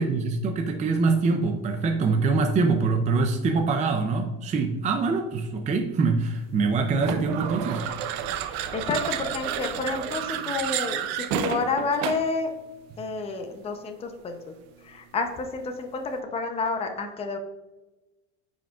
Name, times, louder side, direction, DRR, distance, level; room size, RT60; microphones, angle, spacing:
voice 1, 0.0-7.9, right 4 dB, 20° right, 5 dB, 0.5 m, -24 dB
sound 1, 7.0-12.4, right 9 dB, 75° right, 0.7 m, -31 dB
voice 2, 8.3-12.5 13.0-17.4, left 4 dB, 15° left, 5 dB, 0.6 m, -30 dB
8.9 x 5.1 x 2.4 m, 1.1 s
cardioid pair, 135°, 35 cm